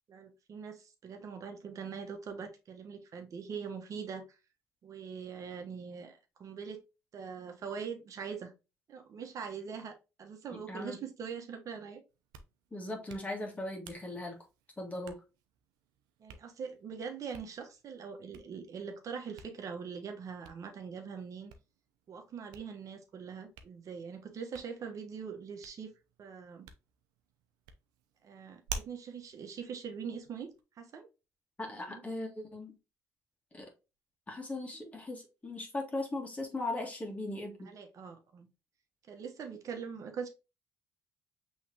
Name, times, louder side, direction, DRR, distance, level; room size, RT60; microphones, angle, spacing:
voice 1, 0.1-4.4 4.8-6.8 7.1-8.5 8.9-12.0 16.2-21.5 22.1-25.9 26.2-26.7 28.2-30.5 30.8-31.1 31.7-32.0 37.6-38.5 39.1-40.3, right 6 dB, 55° right, 1.1 m, -42 dB
voice 2, 10.7-11.0 12.7-14.4 14.8-15.2 31.6-32.8 33.5-33.7 34.3-37.7, left 2 dB, 20° left, 1.6 m, -38 dB
Hands, 12.1-30.6, right 5 dB, 90° right, 0.6 m, -52 dB
5.6 x 3.2 x 2.8 m
cardioid pair, 85°, 7 cm